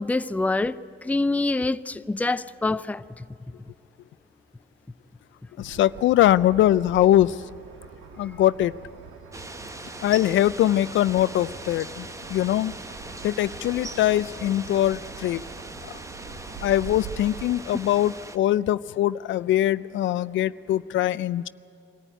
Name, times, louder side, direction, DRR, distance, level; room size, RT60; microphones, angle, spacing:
voice 1, 0.0-3.2, left 2 dB, 5° left, 13 dB, 0.5 m, -26 dB
voice 2, 5.6-7.4 8.2-8.7 10.0-12.7 13.2-15.4 15.8-15.9 16.6-21.5, left 13 dB, 70° left, 17 dB, 0.4 m, -22 dB
sound 1, 5.7-17.4, right 6 dB, 90° right, 1.6 m, -44 dB
sound 2, 9.3-18.4, right 2 dB, 15° right, 0.9 m, -40 dB
23.5 x 14.0 x 9.1 m, 2.4 s
cardioid pair, 90°, 20 cm